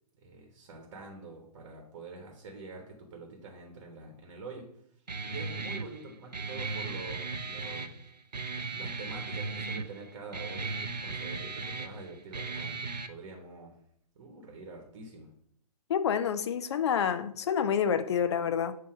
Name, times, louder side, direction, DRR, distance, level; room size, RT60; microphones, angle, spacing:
voice 1, 0.2-4.7 5.2-8.0 8.7-13.8 14.1-15.3, right 3 dB, 35° right, 1.1 m, -46 dB
Guitar, 5.1-13.1, right 4 dB, 85° right, 0.6 m, -37 dB
voice 2, 15.9-18.7, left 8 dB, 40° left, 0.5 m, -28 dB
7.3 x 2.8 x 4.9 m
figure-of-eight pair, 130°, 21 cm